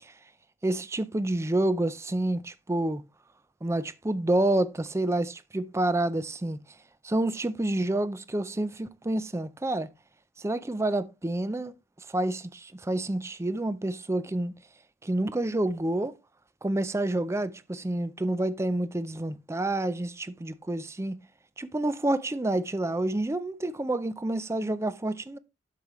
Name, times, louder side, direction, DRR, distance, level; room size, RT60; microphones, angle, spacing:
voice 1, 0.6-3.0 3.6-6.6 7.0-9.9 10.4-11.7 12.1-14.5 15.0-16.1 16.6-21.2 21.6-25.4, right 1 dB, 15° right, 0.4 m, -28 dB
8.3 x 6.6 x 3.0 m
head